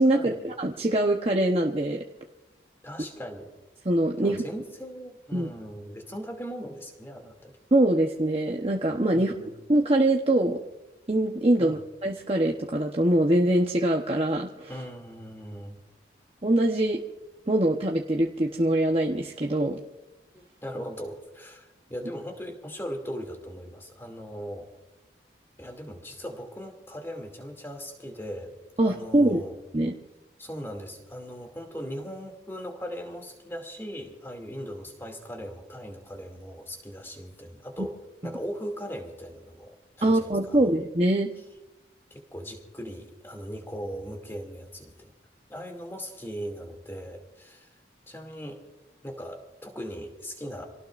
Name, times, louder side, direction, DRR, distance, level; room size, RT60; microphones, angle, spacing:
voice 1, 0.0-2.0 3.8-4.4 5.3-5.5 7.7-9.3 9.7-10.6 11.1-14.7 16.4-17.0 17.5-19.8 28.8-29.4 29.7-29.9 38.2-38.4 40.0-41.3, right 1 dB, 30° right, 0 dB, 1.0 m, -23 dB
voice 2, 2.8-3.5 4.2-7.5 9.1-9.6 11.6-11.8 14.6-15.8 20.3-24.7 25.6-28.5 28.8-29.6 30.4-38.0 38.2-40.8 42.1-45.1 45.5-47.7 48.1-48.6 49.0-50.7, equal, 15° left, 3 dB, 2.5 m, -39 dB
27.5 x 18.0 x 2.5 m, 1.0 s
head